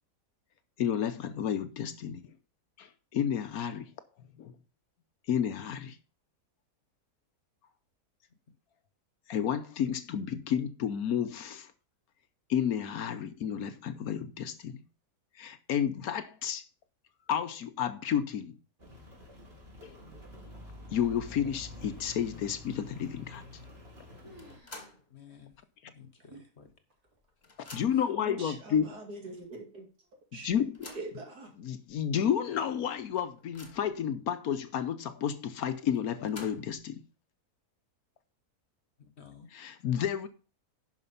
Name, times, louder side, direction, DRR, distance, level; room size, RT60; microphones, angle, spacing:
voice 1, 0.8-2.2 2.8-3.9 4.4-4.5 5.3-6.0 9.3-11.7 12.5-14.8 15.4-16.6 17.3-18.6 19.8-20.0 20.9-23.4 27.7-28.8 30.4-30.7 31.6-37.0 39.5-40.3, left 9 dB, 70° left, 1.3 m, -31 dB
Rain, 18.8-24.6, left 2 dB, 35° right, 2.9 m, -48 dB
sound 1, 24.2-25.0 25.3-25.4 26.1-26.2 26.9-27.3, left 1 dB, 60° right, 4.5 m, -56 dB
sound 2, 24.4-25.1 25.5-25.6 26.7-26.8 27.1-28.2 28.9-29.0 29.4-29.5 30.5-31.2 31.9-32.0 32.4-32.5 33.0-34.0 35.9-36.9, left 2 dB, 30° left, 1.5 m, -50 dB
voice 2, 25.1-25.6 25.8-26.7 27.6-27.8 39.0-39.5, left 7 dB, 45° left, 1.4 m, -54 dB
voice 3, 28.2-29.9 30.3-30.5 30.8-31.5, right 2 dB, 80° right, 3.1 m, -43 dB
11.0 x 5.1 x 5.5 m
omnidirectional pair, 1.7 m